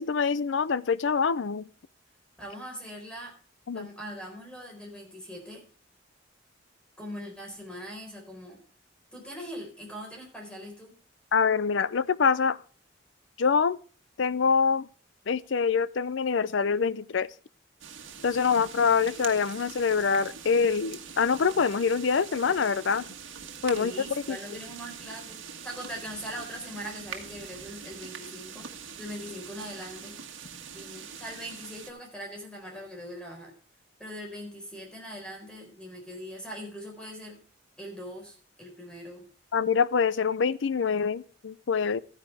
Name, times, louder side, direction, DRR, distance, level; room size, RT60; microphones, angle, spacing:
voice 1, 0.0-1.7 3.7-3.9 11.3-12.6 13.4-13.8 14.2-14.9 15.3-17.3 18.2-23.1 23.6-23.9 24.3-24.4 39.5-42.0, left 5 dB, 70° left, 0.5 m, -25 dB
voice 2, 2.4-3.3 3.7-5.6 7.0-8.6 9.1-10.9 23.7-30.2 30.7-33.5 34.0-37.4 37.8-39.2, equal, 5° left, 4.3 m, -41 dB
sound 1, 17.8-31.9, right 7 dB, 90° right, 1.7 m, -43 dB
14.0 x 9.9 x 3.4 m
head